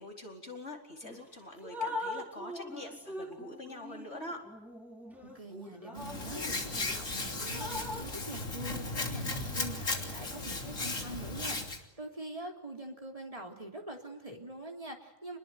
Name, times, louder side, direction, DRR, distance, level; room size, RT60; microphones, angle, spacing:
voice 1, 0.0-4.5, left 1 dB, 55° left, 2 dB, 4.8 m, -44 dB
Drip, 1.0-1.2 1.6-7.0 7.4-8.1, left 2 dB, ahead, 4.4 m, -42 dB
voice 2, 5.2-15.4, right 2 dB, 25° right, 2 dB, 3.4 m, -44 dB
Hands, 6.0-11.8, left 2 dB, 75° left, 3.6 m, -36 dB
28.0 x 21.0 x 9.4 m, 0.93 s
omnidirectional pair, 1.4 m